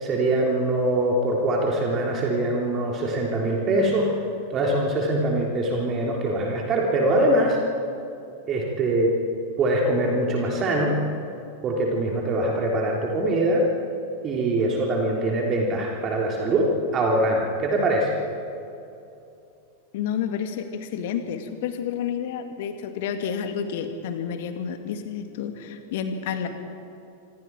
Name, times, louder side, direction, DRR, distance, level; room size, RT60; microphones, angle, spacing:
voice 1, 0.0-4.1 4.5-7.6 8.5-9.2 9.6-10.9 11.6-13.6 14.2-18.1, right 1 dB, 30° right, -1 dB, 3.3 m, -23 dB
voice 2, 19.9-26.5, left 7 dB, 50° left, 7 dB, 2.2 m, -30 dB
27.0 x 26.0 x 4.6 m, 2.6 s
figure-of-eight pair, 90°, 0 cm